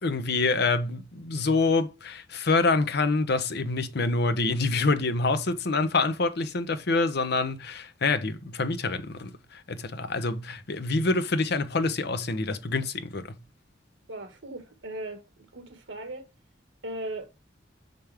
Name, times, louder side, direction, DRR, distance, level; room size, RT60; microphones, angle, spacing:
voice 1, 0.0-13.4, left 3 dB, 60° left, 0.8 m, -26 dB
voice 2, 14.1-15.2 15.5-16.3 16.8-17.3, right 1 dB, 80° right, 1.7 m, -37 dB
6.1 x 5.2 x 3.5 m
head